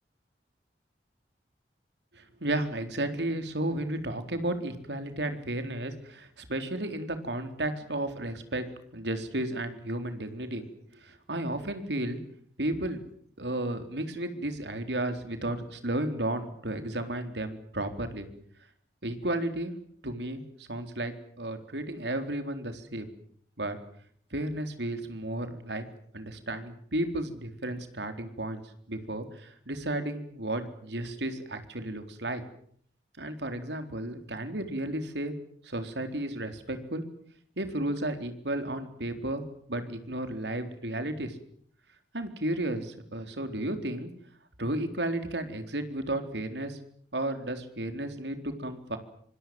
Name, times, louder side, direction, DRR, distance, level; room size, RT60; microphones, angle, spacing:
voice 1, 2.1-8.7 8.9-10.6 11.0-12.2 12.6-13.0 13.4-18.3 19.0-19.8 20.0-23.1 23.6-23.8 24.3-25.8 26.1-28.6 28.9-32.4 33.2-35.4 35.6-37.0 37.6-41.4 42.1-44.1 44.6-46.8 47.1-49.0, right 1 dB, 80° right, 8 dB, 4.0 m, -33 dB
26.5 x 25.5 x 7.9 m, 0.62 s
head